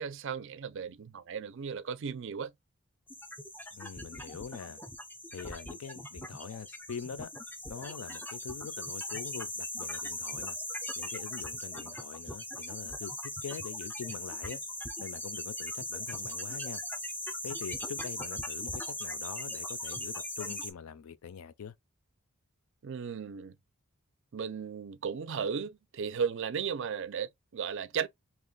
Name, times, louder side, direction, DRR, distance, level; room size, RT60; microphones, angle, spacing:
voice 1, 0.0-2.5 22.8-23.6 24.3-28.1, right 6 dB, 60° right, 0.4 m, -35 dB
sound 1, 3.1-20.7, left 1 dB, 10° left, 0.4 m, -39 dB
voice 2, 3.7-4.8 5.3-7.3 7.7-10.6 11.0-14.6 15.0-16.8 17.4-21.7, left 6 dB, 75° left, 0.4 m, -43 dB
2.9 x 2.2 x 3.8 m
head